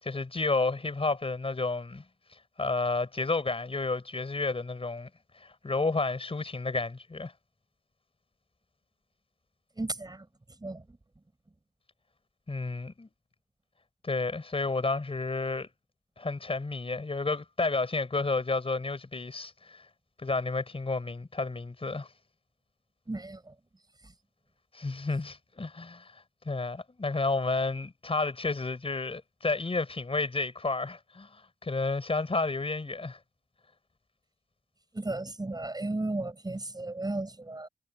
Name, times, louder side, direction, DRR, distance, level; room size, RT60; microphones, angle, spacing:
voice 1, 0.0-2.0 2.3-5.1 5.4-7.3 12.5-13.1 14.0-15.7 16.2-19.8 20.2-22.1 24.7-33.2, left 3 dB, 30° left, 4.9 m, -31 dB
voice 2, 9.8-10.3 10.6-10.8 23.1-23.5 24.0-24.1 34.9-37.7, right 2 dB, 20° right, 6.6 m, -34 dB
wide cardioid pair, 165°, 20 cm